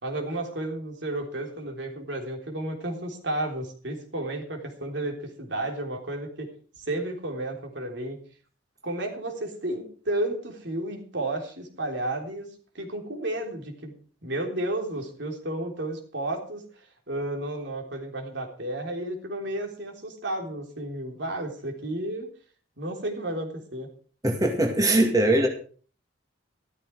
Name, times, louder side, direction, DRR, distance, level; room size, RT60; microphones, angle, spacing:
voice 1, 0.0-6.5 6.8-8.2 8.8-12.5 12.7-13.9 14.2-22.3 22.8-23.9, right 1 dB, 65° right, 2 dB, 3.7 m, -32 dB
voice 2, 24.2-25.5, right 1 dB, 20° right, 2 dB, 2.1 m, -21 dB
14.0 x 13.5 x 4.8 m, 0.42 s
head